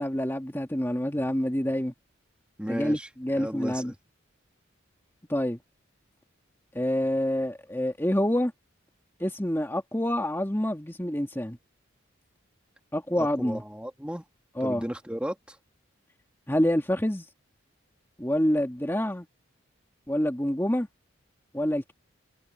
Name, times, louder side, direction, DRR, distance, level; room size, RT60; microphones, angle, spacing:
voice 1, 0.0-1.9 2.7-3.9 5.3-5.6 6.7-8.5 9.2-11.6 12.9-13.6 14.6-14.9 16.5-17.3 18.2-19.3 20.1-20.9 21.5-21.9, equal, 10° left, 1.9 m, -27 dB
voice 2, 2.6-3.1 3.3-3.9 13.1-14.2 14.6-15.6, equal, 5° right, 1.5 m, -34 dB
head